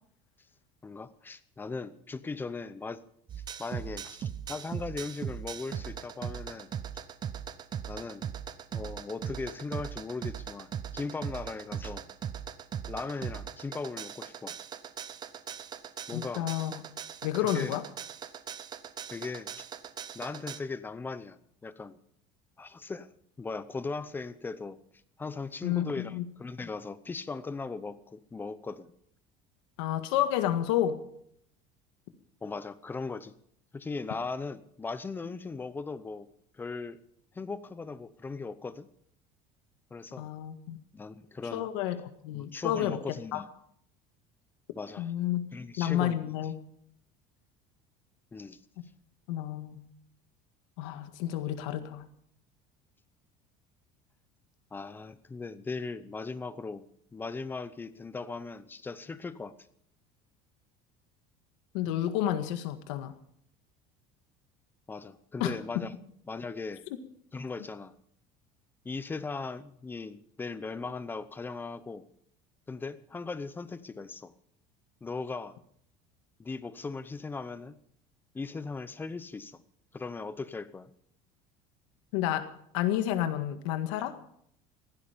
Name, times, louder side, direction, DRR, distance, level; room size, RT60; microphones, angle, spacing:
voice 1, 0.8-3.0 3.6-6.7 7.9-8.3 8.7-12.0 12.9-14.6 16.1-16.5 17.4-17.8 19.1-19.7 20.1-22.0 22.6-23.1 23.4-24.8 25.2-28.9 32.4-33.3 33.7-36.3 36.5-37.0 37.3-38.9 39.9-40.3 40.9-41.7 42.3-43.5 44.8-45.1 45.5-46.3 48.3-48.6 54.7-56.8 57.1-59.5 64.9-66.0 66.3-66.8 67.3-68.0 68.8-72.0 72.7-74.3 75.0-75.6 76.4-77.8 78.3-79.6 79.9-80.9, left 4 dB, 15° left, 14 dB, 0.8 m, -38 dB
sound 1, 3.3-20.6, right 8 dB, 30° right, 0.8 m, -39 dB
voice 2, 16.1-16.8 17.2-17.8 25.6-26.2 29.8-31.0 40.2-40.8 41.5-42.0 42.2-43.4 45.0-45.4 45.8-46.5 48.8-48.9 49.3-49.8 50.8-52.1 61.7-63.2 65.4-65.5 82.1-82.5 82.7-84.2, left 12 dB, 85° left, 8 dB, 1.9 m, -30 dB
16.0 x 15.5 x 5.2 m, 0.68 s
cardioid pair, 150°, 15 cm